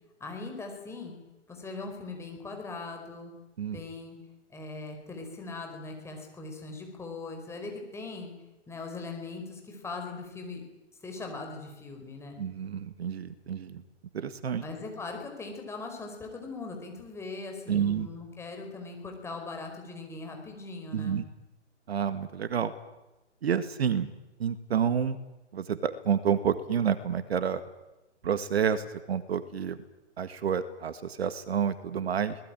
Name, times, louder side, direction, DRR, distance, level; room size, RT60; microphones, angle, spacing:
voice 1, 0.2-1.1 1.5-3.3 3.7-4.1 4.5-8.3 8.7-10.6 11.0-12.4 14.6-21.2, left 3 dB, 5° left, 2 dB, 4.8 m, -40 dB
voice 2, 12.4-13.8 14.1-14.6 17.7-18.1 20.9-21.2 21.9-22.7 23.4-24.1 24.4-25.2 25.5-27.6 28.2-29.8 30.2-32.4, right 8 dB, 55° right, 12 dB, 1.9 m, -29 dB
23.5 x 19.5 x 9.1 m, 1.0 s
hypercardioid pair, 140°, 36 cm